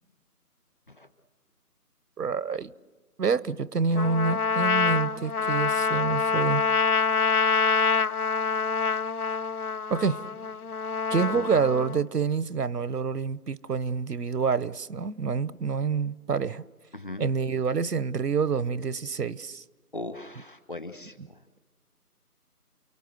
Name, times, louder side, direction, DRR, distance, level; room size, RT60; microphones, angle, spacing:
voice 1, 2.2-2.7 3.2-6.7 9.9-10.2 11.1-16.6 17.2-19.6, right 5 dB, 80° right, 1.0 m, -27 dB
Trumpet, 3.9-12.0, left 5 dB, 70° left, 0.9 m, -26 dB
voice 2, 11.3-11.7 16.9-17.3 19.9-21.4, left 2 dB, 35° left, 1.2 m, -39 dB
29.5 x 24.0 x 7.9 m
figure-of-eight pair, 175°, 47 cm